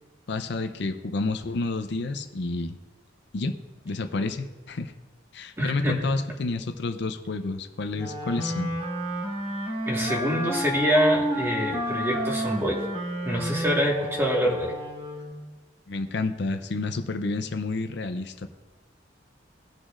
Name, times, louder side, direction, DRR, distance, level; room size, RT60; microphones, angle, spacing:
voice 1, 0.3-2.8 3.3-3.5 3.8-4.9 5.3-8.7 15.9-18.5, left 3 dB, 60° left, 8 dB, 0.5 m, -29 dB
voice 2, 5.6-6.0 9.9-12.8 13.2-14.7, equal, 15° right, -2 dB, 1.5 m, -25 dB
Wind instrument woodwind instrument, 7.9-15.4, equal, 35° right, 2.9 m, -31 dB
18.5 x 6.3 x 2.5 m, 1.2 s
head